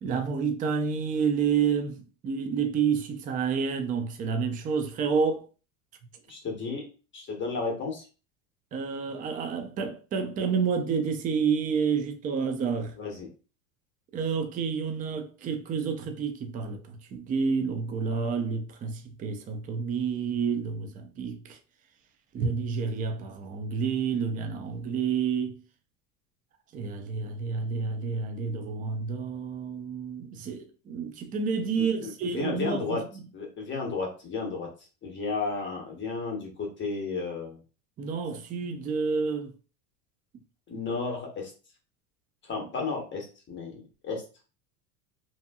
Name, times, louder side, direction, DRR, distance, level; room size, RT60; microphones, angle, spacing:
voice 1, 0.0-5.4 8.7-12.9 14.1-21.6 22.3-25.6 26.7-33.0 38.0-39.5, right 6 dB, 20° right, 0.3 m, -29 dB
voice 2, 6.3-6.8 7.1-8.1 12.9-13.3 31.8-33.0 33.3-34.7 35.0-37.6 40.7-41.5 42.4-44.2, left 4 dB, 25° left, 1.0 m, -33 dB
2.6 x 2.6 x 2.3 m
supercardioid pair, 110°, 42 cm